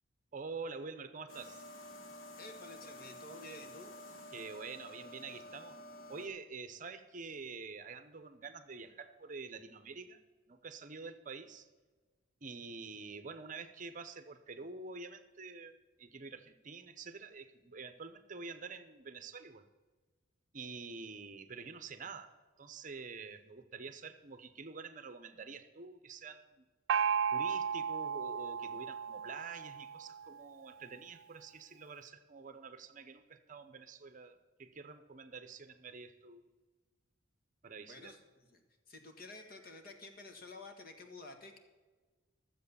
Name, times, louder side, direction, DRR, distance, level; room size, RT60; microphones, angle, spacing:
voice 1, 0.3-1.7 4.3-5.8 6.1-10.2 10.5-11.7 12.4-19.7 20.5-22.3 22.6-26.6 27.3-36.4 37.6-38.2, right 4 dB, 40° right, 10 dB, 0.7 m, -47 dB
sound 1, 1.3-6.3, left 1 dB, 85° left, 1.9 m, -51 dB
voice 2, 2.4-3.9 37.8-38.6 38.9-41.6, left 2 dB, 50° left, 5 dB, 1.6 m, -51 dB
Gong, 26.9-30.4, right 7 dB, 75° right, 0.3 m, -35 dB
13.5 x 7.6 x 6.9 m, 1.3 s
head